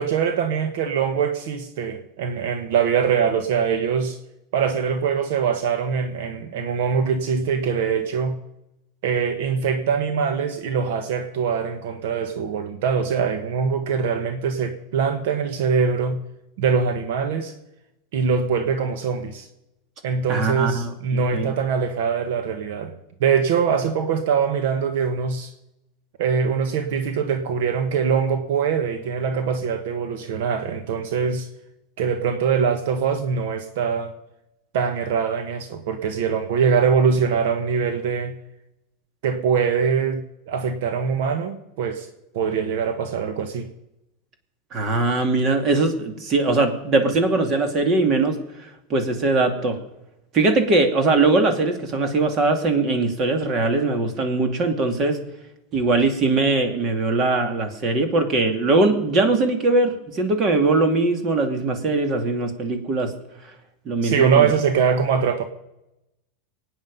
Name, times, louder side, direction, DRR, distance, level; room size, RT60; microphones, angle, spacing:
voice 1, 0.0-4.2 4.5-8.4 9.0-16.2 16.6-17.5 18.1-19.5 20.0-22.9 23.2-25.5 26.2-31.5 32.0-34.1 34.7-38.4 39.2-42.1 42.3-43.7 64.0-65.4, right 6 dB, 70° right, 1.3 m, -23 dB
voice 2, 20.3-21.5 44.7-48.4 48.9-49.8 50.3-55.2 55.7-63.1 63.9-64.5, right 3 dB, 35° right, 2.5 m, -21 dB
23.5 x 9.5 x 5.4 m
supercardioid pair, 140°, 0 cm